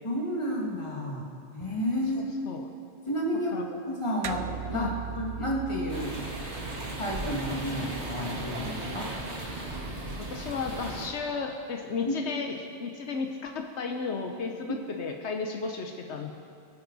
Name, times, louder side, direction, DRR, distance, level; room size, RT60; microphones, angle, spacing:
voice 1, 0.0-2.3 3.1-6.6 7.0-9.1 12.0-12.1 14.7-14.8, equal, 25° left, -3 dB, 2.0 m, -31 dB
voice 2, 2.1-2.6 3.5-3.7 4.7-5.0 10.2-16.3, left 4 dB, 80° left, 4 dB, 1.1 m, -34 dB
sound 1, 4.2-9.0, right 8 dB, 55° right, 0.4 m, -40 dB
sound 2, 5.9-11.1, right 1 dB, 90° right, 2.1 m, -36 dB
22.5 x 9.0 x 4.0 m, 2.6 s
omnidirectional pair, 1.1 m